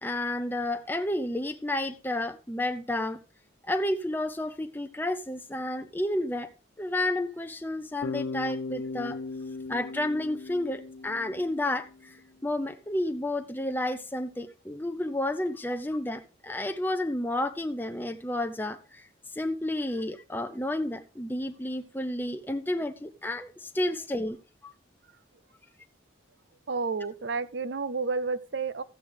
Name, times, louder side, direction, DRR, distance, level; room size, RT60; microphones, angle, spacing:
voice 1, 0.0-3.2 3.6-6.5 6.8-9.2 9.7-12.1 12.4-19.0 19.3-24.4 24.6-24.7, left 1 dB, 10° left, 0.6 m, -31 dB
Bass guitar, 8.0-12.1, left 3 dB, 90° left, 0.5 m, -37 dB
voice 2, 26.7-28.8, right 4 dB, 70° right, 0.6 m, -31 dB
14.0 x 8.4 x 3.4 m
head